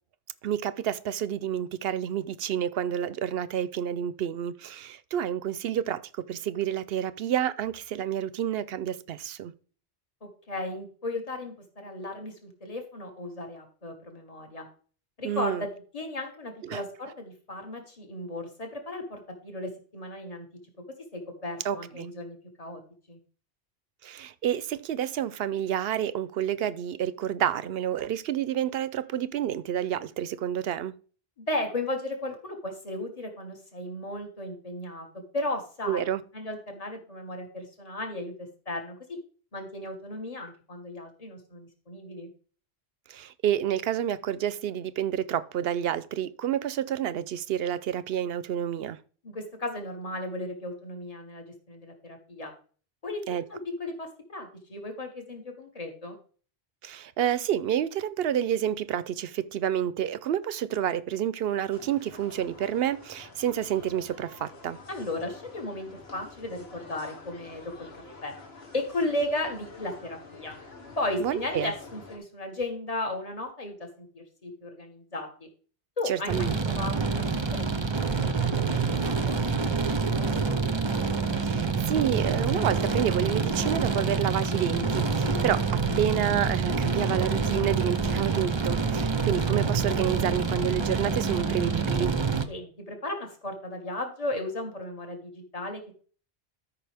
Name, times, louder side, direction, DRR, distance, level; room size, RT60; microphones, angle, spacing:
voice 1, 0.4-9.5 15.2-15.6 16.6-16.8 21.6-22.1 24.0-30.9 35.9-36.2 43.1-49.0 53.3-53.4 56.8-64.8 71.2-71.7 76.1-76.5 81.4-92.1, right 10 dB, 70° right, 0.8 m, -29 dB
voice 2, 10.2-14.7 15.2-15.7 15.9-20.5 21.1-22.8 23.1-23.2 31.5-35.1 35.3-36.0 36.3-39.2 39.5-42.3 49.2-52.5 53.0-53.2 53.5-56.2 64.9-67.9 68.2-68.3 68.7-70.6 71.0-75.5 76.0-77.2 77.5-80.6 92.5-95.9, left 1 dB, 35° left, 1.8 m, -35 dB
sound 1, 61.7-72.2, left 3 dB, 75° left, 2.0 m, -48 dB
sound 2, 76.3-92.5, right 4 dB, 30° right, 0.6 m, -27 dB
13.0 x 5.6 x 3.4 m
omnidirectional pair, 1.1 m